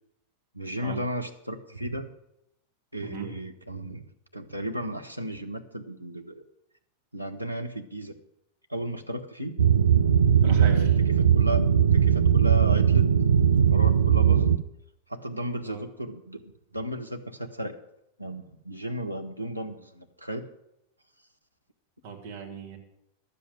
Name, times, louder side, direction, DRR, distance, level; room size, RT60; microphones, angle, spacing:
voice 1, 0.5-2.1 2.9-4.0 4.3-6.4 7.1-8.2 8.7-9.5 10.4-11.6 11.9-13.1 13.6-14.5 15.1-17.8 18.2-20.4, right 1 dB, 90° right, 4 dB, 1.0 m, -34 dB
sound 1, 9.6-14.6, right 8 dB, 75° right, 0.6 m, -20 dB
voice 2, 10.4-10.9 15.7-15.8 22.0-22.8, right 7 dB, 50° right, 1 dB, 2.4 m, -38 dB
11.5 x 7.9 x 7.6 m, 0.80 s
figure-of-eight pair, 90°, 0 cm